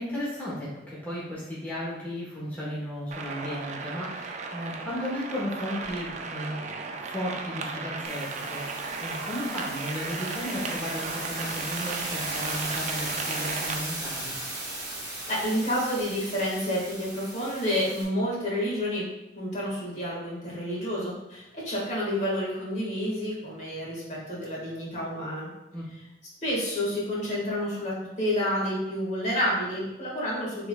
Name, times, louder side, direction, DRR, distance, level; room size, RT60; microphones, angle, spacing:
voice 1, 0.0-14.3 25.7-25.8, equal, 10° left, -8 dB, 1.1 m, -35 dB
sound 1, 3.1-13.8, right 4 dB, 40° right, 0.4 m, -35 dB
sound 2, 8.0-18.0, right 2 dB, 20° right, 1.0 m, -37 dB
voice 2, 14.9-19.0 19.3-25.5 26.4-30.7, equal, 40° left, -5 dB, 1.5 m, -29 dB
5.9 x 3.5 x 2.2 m, 0.96 s
head